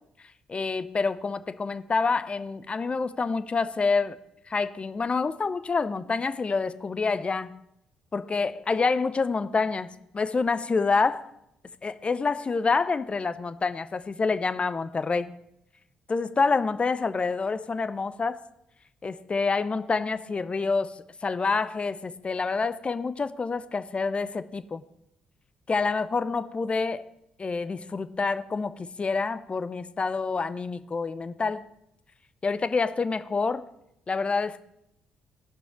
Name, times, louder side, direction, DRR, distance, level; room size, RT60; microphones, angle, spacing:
voice 1, 0.5-4.2 4.5-7.6 8.1-9.9 10.1-11.3 11.8-15.3 16.1-18.4 19.0-24.8 25.7-27.1 27.4-31.7 32.4-33.7 34.1-34.6, left 4 dB, 35° left, 13 dB, 0.6 m, -27 dB
16.5 x 5.6 x 4.5 m, 0.80 s
hypercardioid pair, 45°, 3 cm